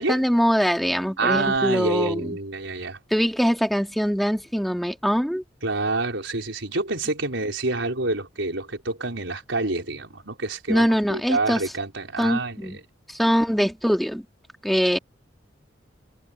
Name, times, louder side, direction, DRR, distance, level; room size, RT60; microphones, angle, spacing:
voice 1, 0.0-2.4 3.1-5.4 10.7-11.6 12.2-12.8 13.1-14.2 14.6-15.0, equal, ahead, 2.5 m, -22 dB
voice 2, 1.2-3.0 5.6-12.8, right 3 dB, 80° right, 4.8 m, -27 dB
head